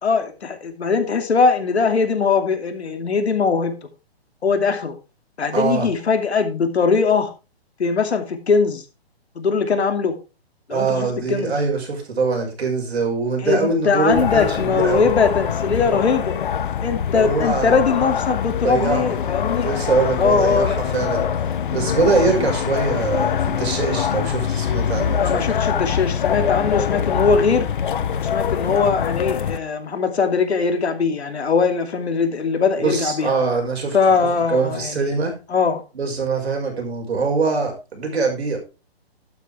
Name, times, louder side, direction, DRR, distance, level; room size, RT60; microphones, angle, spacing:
voice 1, 0.0-3.7 4.4-4.9 5.4-7.3 7.8-8.8 9.4-10.1 10.7-11.5 13.4-16.4 16.8-19.7 20.2-20.8 25.2-27.7 28.2-33.3 33.9-35.0 35.5-35.8, left 5 dB, 85° left, 7 dB, 2.6 m, -20 dB
voice 2, 5.5-5.9 10.7-15.1 17.1-17.8 18.6-19.2 19.6-25.4 32.8-35.4 35.9-38.6, right 4 dB, 80° right, 2 dB, 5.7 m, -23 dB
sound 1, 14.1-29.6, left 8 dB, 50° left, 0.8 m, -23 dB
12.0 x 8.7 x 3.5 m, 0.30 s
hypercardioid pair, 170°, 32 cm